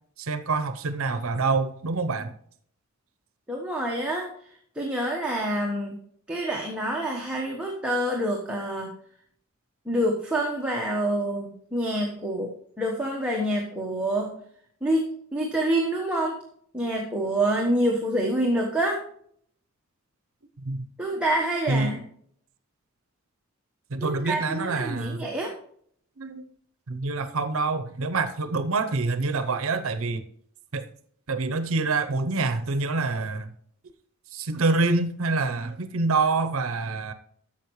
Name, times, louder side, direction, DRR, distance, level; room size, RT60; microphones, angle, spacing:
voice 1, 0.2-2.3 20.6-20.9 21.7-21.9 23.9-25.3 26.2-26.5 26.9-30.2 30.7-30.8 31.3-33.5 34.3-37.1, right 3 dB, 70° right, 10 dB, 0.7 m, -26 dB
voice 2, 3.5-4.3 4.7-6.0 6.3-8.9 9.8-12.5 12.8-14.4 14.8-16.4 16.7-19.0 21.0-22.0 24.0-25.5, right 1 dB, 5° right, -2 dB, 1.1 m, -27 dB
12.0 x 7.2 x 3.1 m, 0.63 s
head